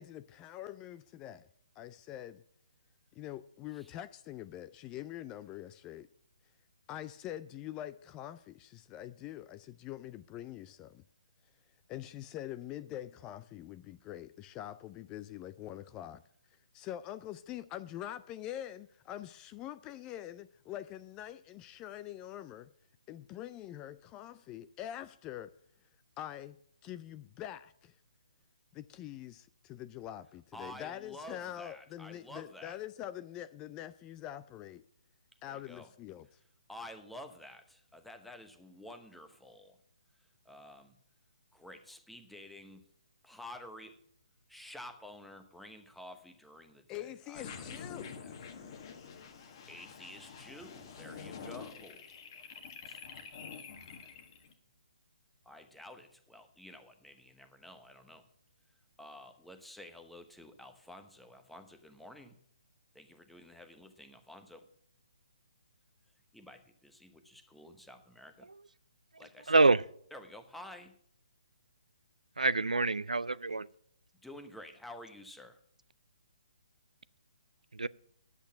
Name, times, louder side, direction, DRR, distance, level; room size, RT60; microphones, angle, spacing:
voice 1, 0.0-1.5 1.8-2.4 3.1-6.1 6.9-11.0 11.9-16.2 16.7-22.7 23.1-25.5 26.2-26.6 26.8-27.9 28.7-34.8 35.4-36.3 46.9-48.1 54.0-54.1, left 12 dB, 20° left, 0.3 m, -44 dB
voice 2, 30.5-32.8 35.5-35.9 36.7-39.8 40.4-41.0 41.5-42.8 43.2-44.0 44.5-48.3 49.7-52.0 52.9-53.0 53.7-53.9 55.4-58.3 59.0-62.4 62.9-64.7 66.3-68.5 69.2-69.7 70.1-70.9 74.2-75.6, left 1 dB, ahead, 0.9 m, -51 dB
sound 1, 47.3-54.5, left 6 dB, 40° left, 1.4 m, -47 dB
voice 3, 69.5-69.8 72.4-73.7 77.8-77.9, right 3 dB, 90° right, 0.4 m, -26 dB
10.0 x 8.5 x 5.7 m
figure-of-eight pair, 140°, 4 cm